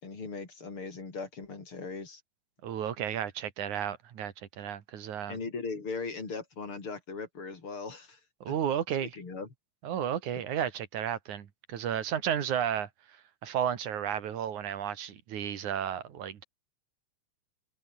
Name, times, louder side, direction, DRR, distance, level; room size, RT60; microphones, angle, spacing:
voice 1, 0.0-2.2 5.3-8.2 8.5-8.6 9.1-9.5, left 4 dB, 45° left, 5.1 m, -39 dB
voice 2, 2.6-5.4 8.4-9.1 9.8-12.9 13.4-16.4, right 9 dB, 85° right, 3.4 m, -33 dB
omnidirectional pair, 3.3 m